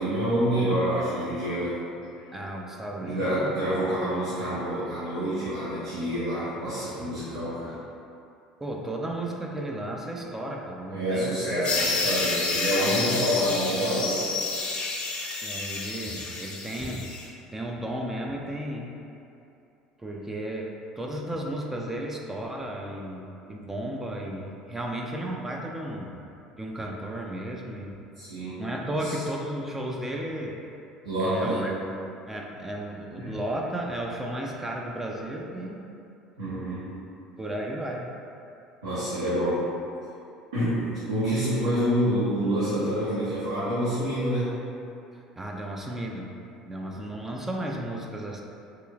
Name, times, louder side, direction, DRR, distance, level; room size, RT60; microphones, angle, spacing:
voice 1, 0.0-1.7 3.0-7.7 10.9-14.3 28.1-29.1 31.0-31.7 33.1-33.3 36.4-36.9 38.8-39.6 40.5-44.5 46.9-47.0, equal, 75° right, -13 dB, 0.9 m, -27 dB
voice 2, 2.3-3.5 8.6-11.5 13.0-13.4 15.4-17.1 17.5-18.9 20.0-26.2 26.6-28.0 28.6-30.6 31.2-31.7 32.3-35.9 37.4-38.1 45.4-48.4, right 1 dB, 10° right, -1 dB, 0.4 m, -34 dB
sound 1, 11.6-17.2, left 3 dB, 35° left, 0.7 m, -29 dB
4.4 x 3.0 x 2.3 m, 2.7 s
figure-of-eight pair, 65°, 3 cm